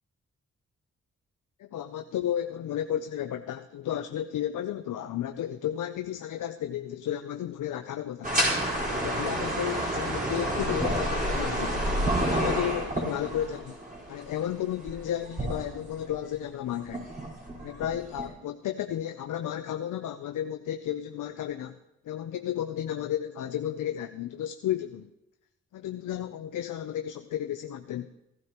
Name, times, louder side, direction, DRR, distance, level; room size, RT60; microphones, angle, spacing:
voice 1, 1.6-8.3 8.9-11.8 12.2-13.8 14.1-17.1 17.6-21.8 22.0-25.1 25.7-28.1, left 11 dB, 85° left, 8 dB, 0.5 m, -33 dB
sound 1, 8.2-16.2 16.8-18.2, right 1 dB, 25° right, 4.4 m, -29 dB
15.5 x 11.5 x 2.9 m, 0.89 s
cardioid pair, 55°, 31 cm